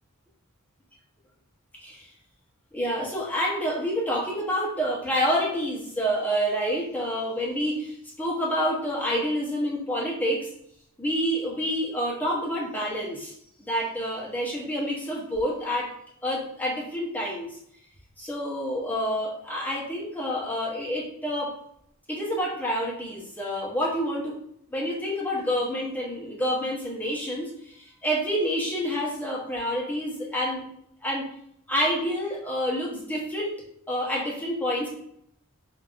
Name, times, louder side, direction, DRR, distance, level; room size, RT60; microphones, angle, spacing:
voice 1, 2.7-10.5 11.0-13.3 13.6-15.9 16.2-17.5 18.2-21.6 22.1-24.4 24.7-30.6 31.0-31.3 31.7-34.9, equal, 10° left, -4 dB, 1.0 m, -28 dB
5.2 x 2.8 x 2.5 m, 0.70 s
head